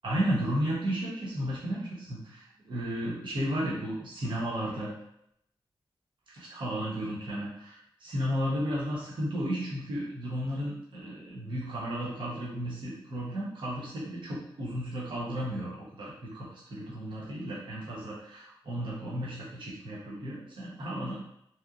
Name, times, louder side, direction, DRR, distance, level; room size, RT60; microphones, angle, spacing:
voice 1, 0.0-4.9 6.3-21.1, equal, 60° right, -7 dB, 0.8 m, -33 dB
2.8 x 2.1 x 2.4 m, 0.75 s
wide cardioid pair, 95°, 9 cm